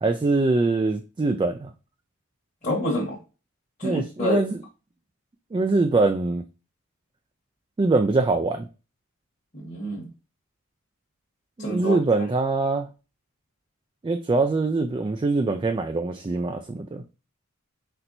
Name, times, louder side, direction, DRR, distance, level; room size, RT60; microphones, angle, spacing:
voice 1, 0.0-1.7 3.8-4.6 5.5-6.4 7.8-8.7 11.6-12.9 14.0-17.0, right 3 dB, 20° right, 0.3 m, -23 dB
voice 2, 2.6-3.2 3.8-4.4 9.5-10.0 11.6-12.0, left 1 dB, 35° left, 1.2 m, -27 dB
4.3 x 4.2 x 2.6 m
head